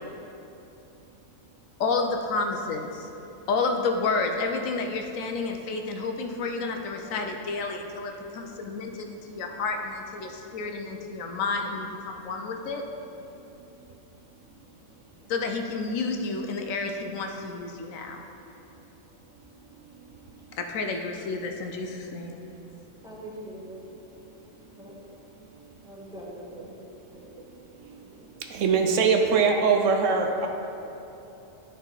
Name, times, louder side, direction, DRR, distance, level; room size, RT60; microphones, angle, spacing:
voice 1, 1.8-3.1 3.5-12.8 15.3-18.2 20.6-22.4, left 3 dB, 80° left, 4 dB, 1.0 m, -30 dB
voice 2, 23.0-23.8 24.1-24.2 24.8-24.9 25.8-26.8 27.1-27.2 27.9-28.2, right 1 dB, 5° right, -6 dB, 1.2 m, -43 dB
voice 3, 28.5-30.5, right 5 dB, 70° right, 3 dB, 0.9 m, -22 dB
11.0 x 3.9 x 4.0 m, 3.0 s
omnidirectional pair, 1.4 m